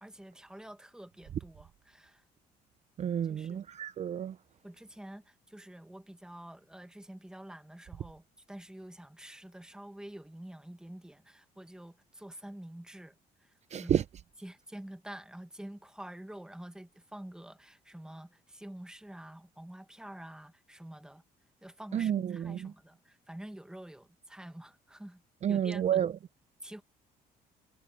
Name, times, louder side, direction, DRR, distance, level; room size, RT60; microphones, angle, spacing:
voice 1, 0.0-2.2 3.2-3.6 4.6-14.0 14.4-21.2 21.6-25.2 25.5-25.9 26.6-26.8, right 1 dB, 5° right, 1.4 m, -48 dB
voice 2, 3.0-4.4 13.7-14.0 21.9-22.7 25.4-26.1, right 9 dB, 40° right, 0.6 m, -30 dB
cardioid pair, 110°, 17 cm